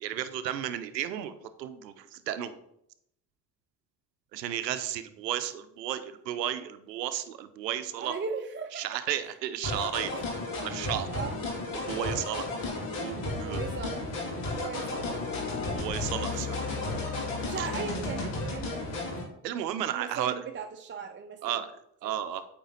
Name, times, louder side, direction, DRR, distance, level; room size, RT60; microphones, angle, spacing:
voice 1, 0.0-2.6 4.3-8.1 8.7-10.1 10.6-11.1 11.9-12.5 12.8-13.6 15.7-16.6 17.6-17.7 19.4-20.3 21.4-21.7 22.0-22.4, right 11 dB, 90° right, 12 dB, 0.6 m, -33 dB
voice 2, 7.9-8.8 10.1-10.2 11.1-11.4 13.2-15.3 15.9-17.1 17.4-18.9 19.9-21.6 22.0-22.2, right 5 dB, 25° right, 5 dB, 0.6 m, -39 dB
sound 1, 9.6-19.2, left 2 dB, 65° left, 2.2 m, -34 dB
sound 2, 12.4-19.1, left 7 dB, 20° left, 0.5 m, -40 dB
8.7 x 3.8 x 3.8 m, 0.75 s
hypercardioid pair, 50°, 48 cm